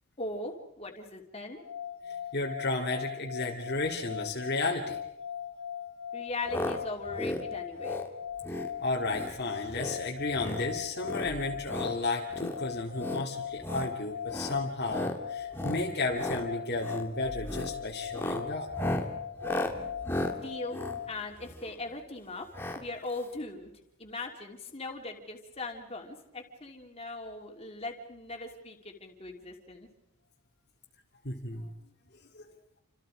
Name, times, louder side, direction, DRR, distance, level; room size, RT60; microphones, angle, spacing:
voice 1, 0.2-1.6 6.1-8.0 20.3-20.8 21.1-22.5 22.7-23.7 24.0-29.9, left 2 dB, 30° left, 2 dB, 3.1 m, -39 dB
sound 1, 1.6-21.1, left 8 dB, 80° left, 1.5 m, -39 dB
voice 2, 2.1-5.0 8.8-18.7 31.2-31.7 32.3-32.4, left 2 dB, 50° left, 0 dB, 2.3 m, -33 dB
sound 2, 6.5-6.8 7.1-7.4 7.8-8.1 8.4-8.7 9.1-9.4 9.7-10.0 10.3-10.7 11.0-11.9 12.3-12.6 13.0-13.2 13.6-13.9 14.3-14.6 14.9-15.2 15.5-15.8 16.1-16.4 16.8-17.1 17.4-17.7 18.1-21.8 22.5-22.8 23.1-23.2 23.4-23.5, left 1 dB, 10° left, 1.9 m, -35 dB
29.5 x 26.5 x 5.0 m, 0.83 s
head